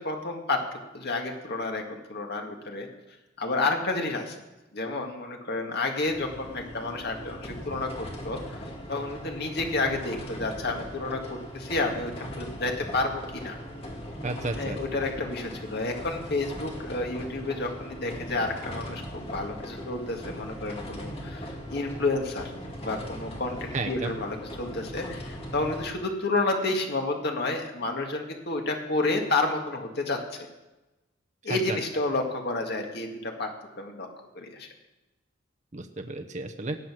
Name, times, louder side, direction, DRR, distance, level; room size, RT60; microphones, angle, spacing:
voice 1, 0.0-2.9 3.4-4.4 4.7-13.6 14.5-22.5 22.8-30.5 31.4-33.5 33.8-34.1 34.4-34.7, left 2 dB, 55° left, 3 dB, 2.0 m, -30 dB
sound 1, 6.1-25.9, equal, 30° left, 2.3 m, -39 dB
voice 2, 14.2-14.8 23.7-24.1 31.5-31.8 35.7-36.8, right 2 dB, 35° right, 5 dB, 0.8 m, -32 dB
18.0 x 8.0 x 6.3 m, 1.0 s
head